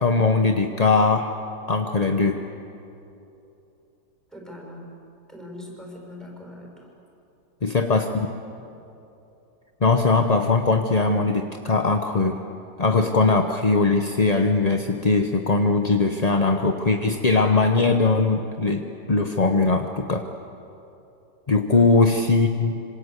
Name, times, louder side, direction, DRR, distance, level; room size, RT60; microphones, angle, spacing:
voice 1, 0.0-1.3 1.7-2.4 7.6-8.3 9.8-12.4 12.8-20.3 21.5-22.8, left 3 dB, 30° left, 5 dB, 0.8 m, -20 dB
voice 2, 4.3-4.9 5.3-6.9 21.7-21.9, left 1 dB, ahead, -1 dB, 6.1 m, -41 dB
26.5 x 26.0 x 8.2 m, 2.9 s
omnidirectional pair, 1.9 m